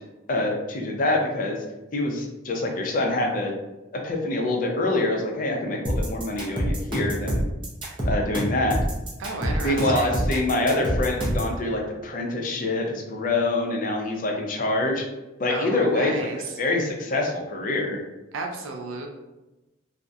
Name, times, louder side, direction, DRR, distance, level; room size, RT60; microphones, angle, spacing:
voice 1, 0.3-1.6 1.9-3.5 4.0-7.4 8.0-8.8 9.6-15.0 15.4-18.0, left 2 dB, 45° left, 1 dB, 0.4 m, -25 dB
sound 1, 5.8-11.5, equal, 25° right, 0.5 m, -26 dB
voice 2, 9.2-10.1 15.5-16.4 18.3-19.1, right 3 dB, 85° right, 2 dB, 0.4 m, -33 dB
2.3 x 2.0 x 2.6 m, 1.0 s
head